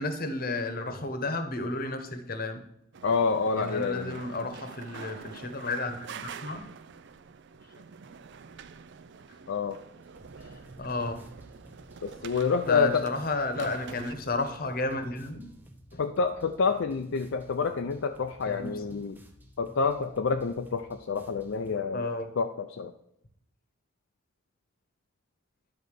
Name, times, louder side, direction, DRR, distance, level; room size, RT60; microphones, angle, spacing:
voice 1, 0.0-2.6 3.6-6.6 10.4-11.2 12.7-15.4 15.9-16.0 18.5-19.0 21.9-22.3, left 2 dB, 45° left, 8 dB, 1.0 m, -32 dB
sound 1, 2.9-14.2, right 6 dB, 60° right, 0.4 m, -46 dB
voice 2, 3.0-4.2 9.5-9.8 12.0-13.1 16.0-19.2 19.6-22.1 22.4-22.9, left 5 dB, 65° left, 6 dB, 0.5 m, -28 dB
sound 2, 10.0-21.8, equal, 10° right, 0.8 m, -55 dB
10.5 x 4.0 x 6.6 m, 0.75 s
head